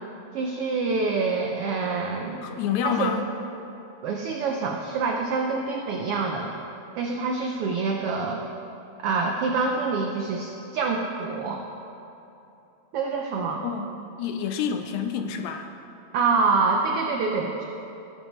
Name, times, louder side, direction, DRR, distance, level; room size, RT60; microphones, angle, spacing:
voice 1, 0.3-2.4 2.8-3.1 4.0-6.5 7.0-8.4 9.0-11.6 12.9-13.6 16.1-17.6, right 4 dB, 80° right, 2 dB, 1.3 m, -26 dB
voice 2, 2.4-3.3 13.6-15.7, left 7 dB, 80° left, 6 dB, 1.8 m, -28 dB
17.0 x 8.1 x 3.1 m, 2.8 s
omnidirectional pair, 3.4 m